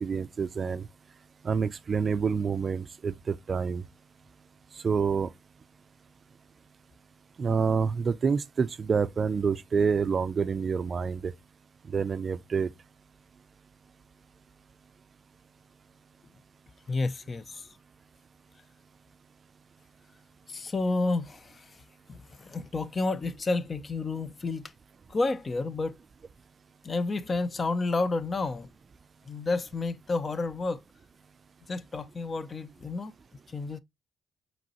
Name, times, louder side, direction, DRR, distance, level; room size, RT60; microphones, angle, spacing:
voice 1, 0.0-0.9 1.4-3.8 4.8-5.3 7.4-11.3 11.9-12.7, right 5 dB, 40° right, 0.3 m, -27 dB
voice 2, 16.9-17.8 20.5-21.8 22.1-24.7 25.1-26.0 26.8-28.7 29.3-30.8 31.7-33.1 33.5-33.8, left 3 dB, 35° left, 0.4 m, -30 dB
5.1 x 3.1 x 2.8 m
cardioid pair, 90°, 0 cm